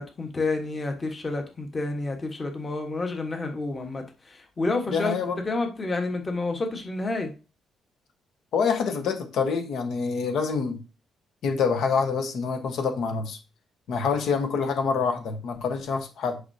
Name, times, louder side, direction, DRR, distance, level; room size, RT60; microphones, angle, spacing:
voice 1, 0.0-5.2 5.4-7.3, left 3 dB, 25° left, 1.3 m, -29 dB
voice 2, 4.9-5.4 8.5-10.8 11.4-13.4 13.9-16.4, left 5 dB, 70° left, 1.2 m, -26 dB
9.5 x 5.6 x 2.7 m
cardioid pair, 140°, 0 cm